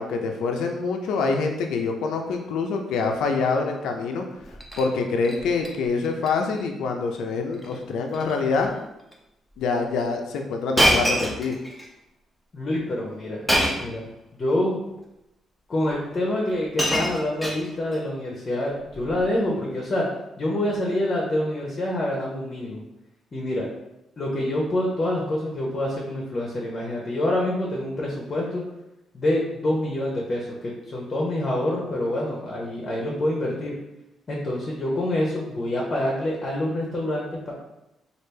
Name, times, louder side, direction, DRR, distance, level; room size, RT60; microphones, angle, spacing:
voice 1, 0.0-4.2 4.8-8.8 9.6-11.6, left 4 dB, 85° left, 3 dB, 0.4 m, -25 dB
Shatter, 4.4-4.9 5.2-5.7 6.0-6.3 6.6-6.7 7.5-7.8 8.1-8.4 9.1-9.2 10.8-11.9 13.5-14.0 15.0-15.1 16.1-16.2 16.5-18.0 18.9-19.2, equal, ahead, 0.6 m, -25 dB
voice 2, 12.5-13.5 13.8-14.0 14.3-14.8 15.7-20.1 20.4-22.8 23.3-23.7 24.2-28.6 29.1-33.7 34.3-37.5, left 1 dB, 40° left, -3 dB, 0.7 m, -26 dB
3.2 x 2.4 x 3.2 m, 0.89 s
cardioid pair, 90°, 0 cm